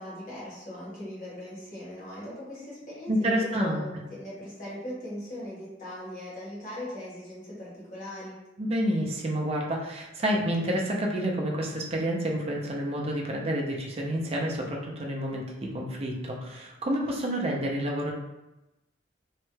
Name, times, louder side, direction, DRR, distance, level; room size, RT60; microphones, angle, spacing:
voice 1, 0.0-8.4, left 1 dB, 45° left, -8 dB, 1.5 m, -39 dB
voice 2, 3.1-3.8 8.6-15.4 15.7-18.1, equal, 35° right, -1 dB, 0.5 m, -29 dB
3.1 x 2.2 x 3.1 m, 0.97 s
head